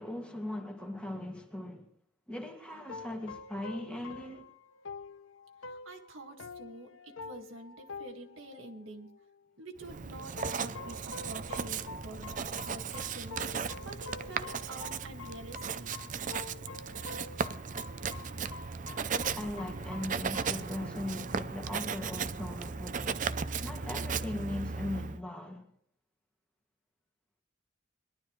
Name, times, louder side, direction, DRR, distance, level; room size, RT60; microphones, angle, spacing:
voice 1, 0.0-1.9 2.3-4.4 19.3-23.3 23.6-25.7, left 1 dB, 5° left, 1.9 m, -39 dB
sound 1, 2.9-9.5 10.4-21.2, left 4 dB, 85° left, 0.8 m, -47 dB
voice 2, 5.6-9.2 9.6-12.4 12.6-16.1, right 2 dB, 85° right, 2.0 m, -48 dB
Writing, 9.8-25.2, right 5 dB, 40° right, 0.5 m, -36 dB
21.0 x 12.0 x 3.2 m
head